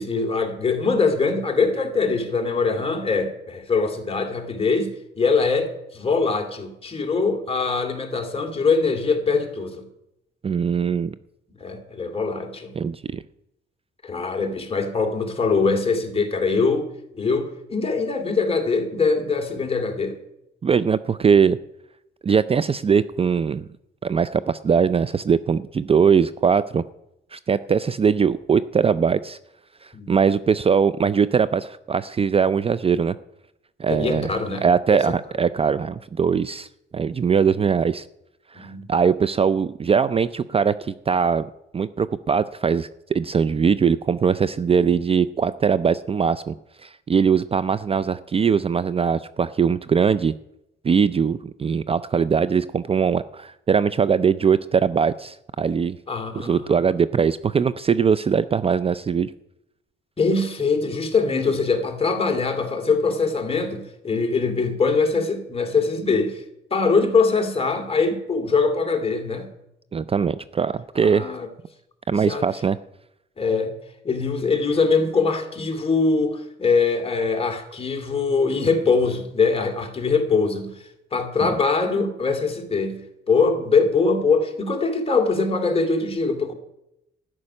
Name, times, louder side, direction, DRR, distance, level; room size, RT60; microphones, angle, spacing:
voice 1, 0.0-9.8 11.6-12.7 14.0-16.9 17.1-20.2 29.9-30.1 33.9-34.7 34.9-35.0 38.5-38.9 56.1-56.7 60.2-66.4 66.7-69.5 71.0-71.5 72.1-72.4 73.4-73.7 74.0-80.8 81.1-86.5, left 4 dB, 30° left, 3 dB, 2.5 m, -22 dB
voice 2, 10.4-11.2 12.7-13.2 20.6-21.6 22.2-23.7 24.0-26.8 27.3-29.4 29.8-33.1 33.8-34.3 34.6-36.7 36.9-38.1 38.5-41.5 41.7-46.5 46.8-50.3 50.8-56.0 56.4-59.3 69.9-71.3 72.1-72.8 81.4-81.5, right 6 dB, 30° right, 15 dB, 0.4 m, -21 dB
13.0 x 6.2 x 9.8 m, 0.83 s
cardioid pair, 90°, 20 cm